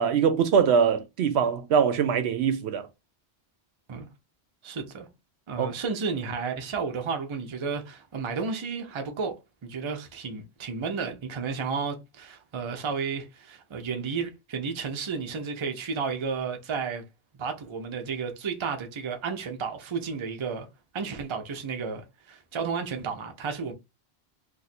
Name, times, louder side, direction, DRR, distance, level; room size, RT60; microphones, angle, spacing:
voice 1, 0.0-2.9 5.6-5.7, right 7 dB, 75° right, 0.8 m, -23 dB
voice 2, 4.6-5.1 5.5-9.3 9.6-17.0 17.4-20.7 20.9-23.7, right 5 dB, 35° right, 0.5 m, -32 dB
2.5 x 2.5 x 4.1 m
omnidirectional pair, 1.1 m